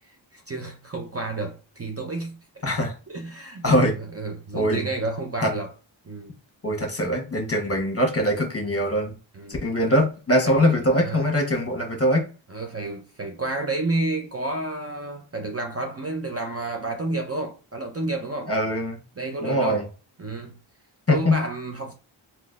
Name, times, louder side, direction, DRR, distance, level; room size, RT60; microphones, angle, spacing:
voice 1, 0.3-2.4 3.1-3.8 4.1-5.7 6.0-6.3 9.3-9.6 10.4-10.7 11.0-11.2 12.5-18.5 19.2-19.8 20.2-20.6 21.1-21.9, right 2 dB, 30° right, 0.7 m, -30 dB
voice 2, 2.6-3.0 3.6-3.9 4.5-4.9 5.4-5.5 6.6-9.1 9.6-12.2 18.5-19.0 19.4-19.8 21.1-21.4, equal, 30° left, 1.3 m, -22 dB
3.8 x 2.9 x 2.4 m
cardioid pair, 65°, 49 cm